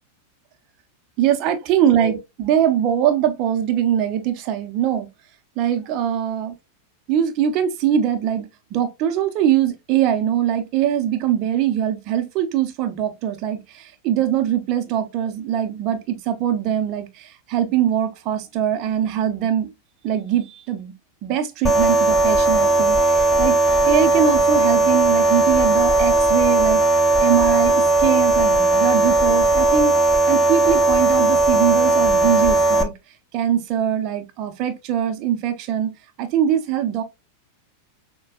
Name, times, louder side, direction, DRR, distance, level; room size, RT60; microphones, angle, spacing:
voice 1, 1.2-5.1 5.6-6.5 7.1-19.7 20.0-20.9 21.2-26.8 27.2-32.9 33.3-35.9 36.2-37.0, right 10 dB, 40° right, 0.7 m, -22 dB
sound 1, 21.7-32.8, right 2 dB, 15° left, 0.7 m, -17 dB
6.3 x 2.3 x 2.4 m
figure-of-eight pair, 90°, 0 cm